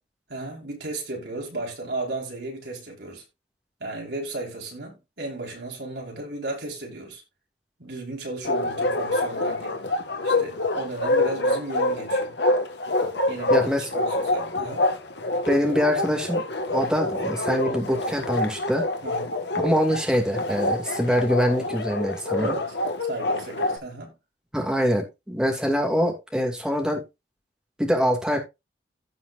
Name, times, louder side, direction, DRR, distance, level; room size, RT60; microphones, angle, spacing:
voice 1, 0.3-3.2 3.8-7.2 7.8-9.8 10.2-12.3 13.3-14.8 19.0-19.3 22.4-22.8 23.1-24.1, right 2 dB, 70° right, 4.6 m, -34 dB
Bark, 8.4-23.8, left 2 dB, 75° left, 1.7 m, -26 dB
voice 2, 13.5-13.9 15.5-16.4 16.7-18.8 19.6-22.5 24.5-27.0 27.8-28.4, equal, 5° right, 2.6 m, -24 dB
16.0 x 5.6 x 2.6 m
head